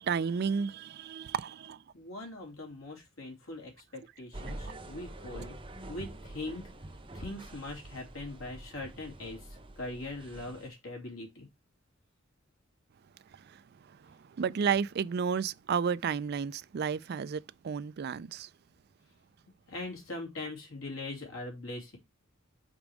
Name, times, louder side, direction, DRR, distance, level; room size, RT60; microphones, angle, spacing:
voice 1, 0.0-1.8 13.3-13.6 13.9-18.5, right 6 dB, 50° right, 0.4 m, -32 dB
voice 2, 1.9-5.6 5.9-6.6 7.1-11.5 19.7-22.0, left 2 dB, 80° left, 2.9 m, -41 dB
sound 1, 4.3-10.7, right 1 dB, 25° right, 0.8 m, -46 dB
5.2 x 5.1 x 4.7 m
head